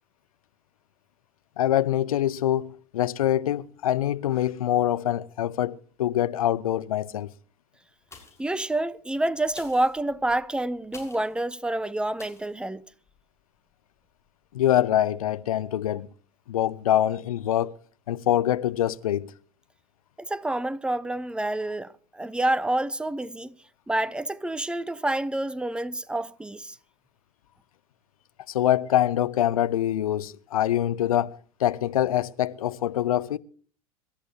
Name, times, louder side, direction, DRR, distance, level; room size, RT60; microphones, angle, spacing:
voice 1, 1.6-7.3 14.5-16.1 16.5-17.8 18.1-19.3 28.5-33.4, left 12 dB, 70° left, 0.7 m, -24 dB
sound 1, 8.0-8.6 9.4-11.4 12.2-12.6 13.1-13.2, left 3 dB, 15° left, 6.6 m, -49 dB
voice 2, 8.4-12.8 20.2-23.5 23.9-26.8, right 1 dB, 5° right, 0.8 m, -28 dB
26.0 x 13.5 x 2.8 m
figure-of-eight pair, 80°, 19 cm